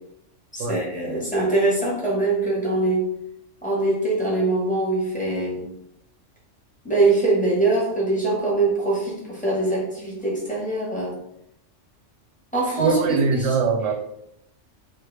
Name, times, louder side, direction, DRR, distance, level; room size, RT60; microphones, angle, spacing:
voice 1, 0.5-3.1 3.6-5.7 6.8-11.1 12.5-13.0 13.3-13.5, right 2 dB, 5° left, -6 dB, 1.1 m, -23 dB
voice 2, 12.8-14.0, right 4 dB, 80° right, 4 dB, 0.9 m, -21 dB
3.2 x 2.4 x 3.2 m, 0.79 s
omnidirectional pair, 1.3 m